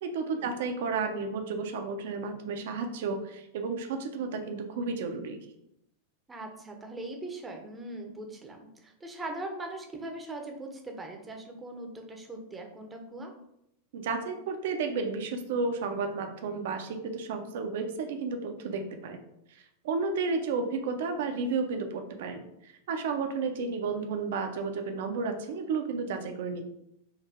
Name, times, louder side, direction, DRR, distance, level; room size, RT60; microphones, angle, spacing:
voice 1, 0.0-5.4 13.9-19.2 19.8-26.6, right 4 dB, 55° right, 6 dB, 0.6 m, -32 dB
voice 2, 6.3-13.3, right 2 dB, 15° right, 3 dB, 0.8 m, -40 dB
4.8 x 2.7 x 3.5 m, 0.79 s
figure-of-eight pair, 90°, 0 cm